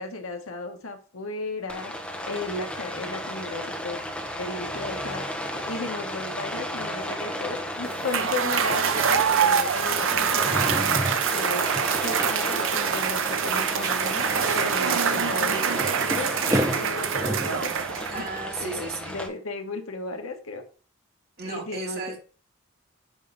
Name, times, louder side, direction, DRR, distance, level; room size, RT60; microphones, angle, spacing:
voice 1, 0.0-1.9 2.3-4.0 4.4-10.7 11.3-15.7 16.1-17.7 18.1-18.2 18.6-20.6 21.4-22.2, left 3 dB, 85° left, 5 dB, 1.4 m, -35 dB
Rain, 1.7-19.3, equal, 5° left, 1.0 m, -34 dB
Cheering / Applause / Crowd, 7.9-18.4, right 7 dB, 70° right, 0.6 m, -25 dB
sound 1, 8.7-8.9 10.3-11.3 11.7-12.5 12.8-13.0 13.3-17.7, right 1 dB, 15° right, 0.9 m, -32 dB
voice 2, 18.1-19.2 21.4-22.2, right 3 dB, 45° right, 0 dB, 2.1 m, -34 dB
8.8 x 3.3 x 5.5 m, 0.38 s
head